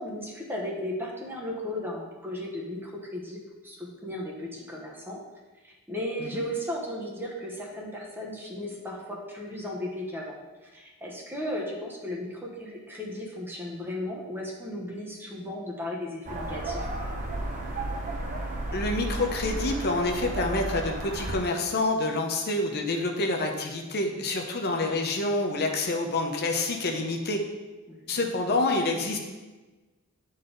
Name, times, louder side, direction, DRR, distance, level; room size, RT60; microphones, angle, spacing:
voice 1, 0.0-5.2 5.6-10.4 10.6-16.9 27.9-28.3, left 1 dB, 10° right, -2 dB, 1.0 m, -35 dB
sound 1, 16.3-21.4, right 2 dB, 35° right, 0.9 m, -33 dB
voice 2, 18.7-27.4 28.1-29.2, left 2 dB, 50° left, 2 dB, 0.7 m, -27 dB
8.4 x 4.0 x 3.8 m, 1.2 s
head